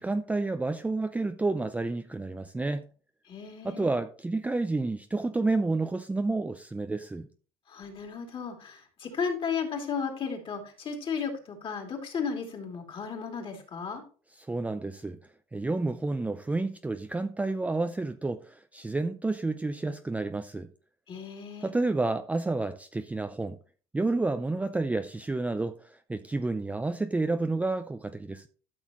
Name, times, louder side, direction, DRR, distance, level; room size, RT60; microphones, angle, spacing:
voice 1, 0.0-2.9 3.6-7.3 14.5-15.2 15.5-20.7 21.6-23.6 23.9-28.5, right 3 dB, 10° right, 0.5 m, -30 dB
voice 2, 3.3-3.9 7.7-14.0 21.1-21.7, left 6 dB, 35° left, 3.0 m, -34 dB
12.5 x 6.4 x 3.1 m
cardioid pair, 120°, 14 cm